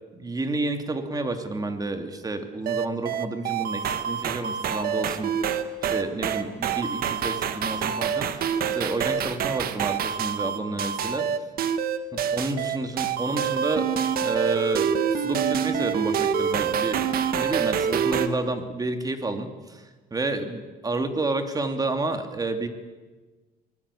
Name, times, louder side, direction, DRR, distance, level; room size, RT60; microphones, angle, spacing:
voice 1, 0.1-5.3 5.8-8.5 8.7-11.3 12.1-13.9 14.2-22.7, right 2 dB, 20° right, 7 dB, 2.9 m, -30 dB
sound 1, 2.7-18.3, right 7 dB, 60° right, 1.7 m, -26 dB
25.5 x 20.0 x 8.6 m, 1.3 s
cardioid pair, 110°, 17 cm